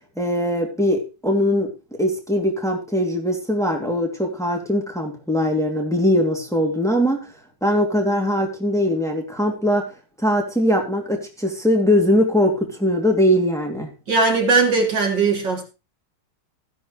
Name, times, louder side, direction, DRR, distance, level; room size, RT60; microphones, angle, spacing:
voice 1, 0.2-1.7 2.0-7.2 7.6-9.8 10.2-13.9, equal, ahead, 2.8 m, -21 dB
voice 2, 14.1-15.6, right 4 dB, 80° right, 3.8 m, -19 dB
15.5 x 11.0 x 3.3 m
omnidirectional pair, 1.9 m